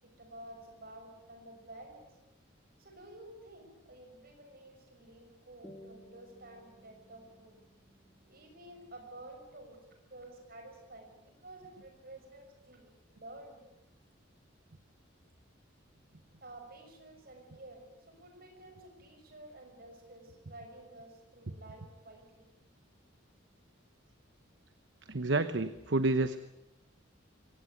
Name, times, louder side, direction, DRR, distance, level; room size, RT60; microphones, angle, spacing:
voice 1, 0.0-2.2 2.8-7.5 8.3-9.8 10.1-13.7 16.4-22.5, right 1 dB, 50° right, 4 dB, 6.5 m, -52 dB
sound 1, 5.6-10.6, equal, 10° left, 3.3 m, -59 dB
voice 2, 25.1-26.4, right 2 dB, 65° right, 11 dB, 1.0 m, -29 dB
24.5 x 18.0 x 9.4 m, 0.92 s
head